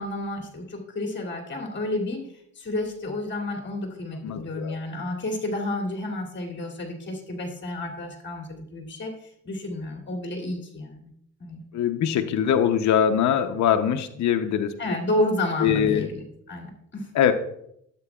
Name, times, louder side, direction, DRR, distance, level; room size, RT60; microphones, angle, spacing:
voice 1, 0.0-2.3 2.5-11.1 11.4-11.6 14.8-16.2 16.5-17.1, left 1 dB, 35° left, 0 dB, 2.6 m, -30 dB
voice 2, 4.2-4.8 11.7-14.8 15.6-16.1 17.1-17.3, left 9 dB, 65° left, 5 dB, 0.7 m, -22 dB
12.0 x 8.4 x 2.3 m, 0.73 s
cardioid pair, 90°, 30 cm